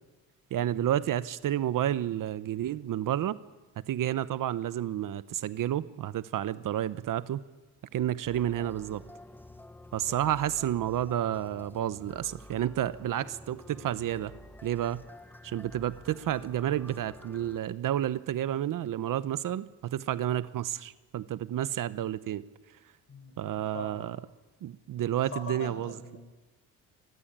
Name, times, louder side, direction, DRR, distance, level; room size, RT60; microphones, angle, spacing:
voice 1, 0.5-3.4 3.9-7.4 7.9-9.0 9.9-14.3 14.6-15.0 15.4-22.4 23.4-24.2 24.6-26.2, right 11 dB, 65° right, 15 dB, 1.0 m, -30 dB
sound 1, 8.2-17.6, left 1 dB, 5° left, 0.9 m, -50 dB
voice 2, 23.1-24.1 25.2-26.2, left 4 dB, 40° left, 6 dB, 6.4 m, -42 dB
24.0 x 19.0 x 8.9 m, 1.2 s
cardioid pair, 110°, 34 cm